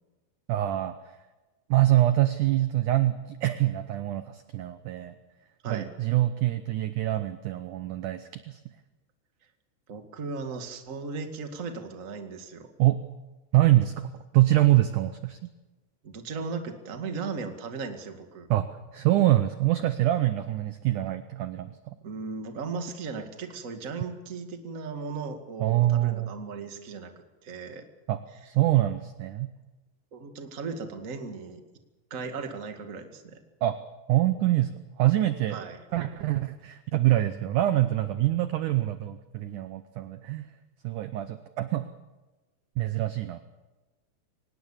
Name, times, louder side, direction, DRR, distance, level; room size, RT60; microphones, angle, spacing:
voice 1, 0.5-1.1 1.7-5.1 5.7-8.6 12.8-13.0 13.5-15.5 18.5-18.7 18.9-22.0 25.6-26.3 28.1-28.2 28.5-29.5 33.6-33.8 34.1-35.6 35.9-40.4 40.8-41.9 42.8-43.4, right 15 dB, 75° right, 10 dB, 1.9 m, -25 dB
voice 2, 9.9-12.7 16.0-18.5 22.0-27.1 27.4-27.8 30.1-31.6 32.1-33.4 35.5-35.8, right 4 dB, 30° right, 5 dB, 1.5 m, -37 dB
24.5 x 20.0 x 7.3 m, 1.1 s
omnidirectional pair, 4.6 m